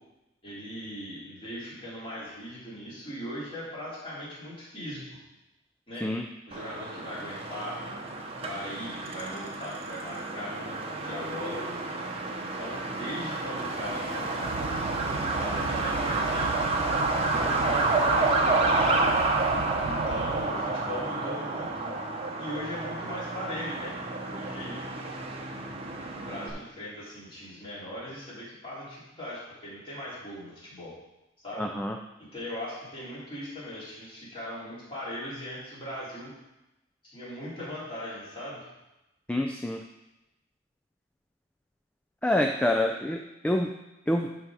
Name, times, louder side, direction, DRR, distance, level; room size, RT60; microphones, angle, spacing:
voice 1, 0.4-5.0 5.9-6.1 6.5-7.8 8.4-11.6 12.4-16.5 17.3-19.1 19.8-21.9 22.4-24.0 24.2-24.8 26.1-30.9 31.4-31.7 32.2-36.3 37.0-38.7, equal, 25° left, -9 dB, 3.2 m, -39 dB
Truck, 6.5-26.5, right 3 dB, 30° right, 0.8 m, -29 dB
sound 1, 14.4-20.5, right 5 dB, 75° right, 0.4 m, -38 dB
voice 2, 31.6-32.0 39.3-39.8 42.2-43.7 44.1-44.3, left 1 dB, 5° left, 3 dB, 0.3 m, -27 dB
11.0 x 3.9 x 4.8 m, 0.95 s
head